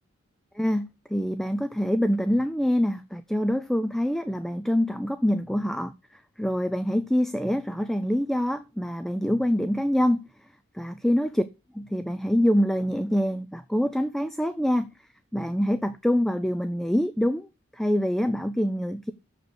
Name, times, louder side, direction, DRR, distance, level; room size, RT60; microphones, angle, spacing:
voice 1, 0.5-10.2 10.7-11.4 11.8-14.9 15.3-17.5 17.7-19.1, equal, ahead, 0.5 m, -25 dB
7.7 x 6.9 x 7.9 m
head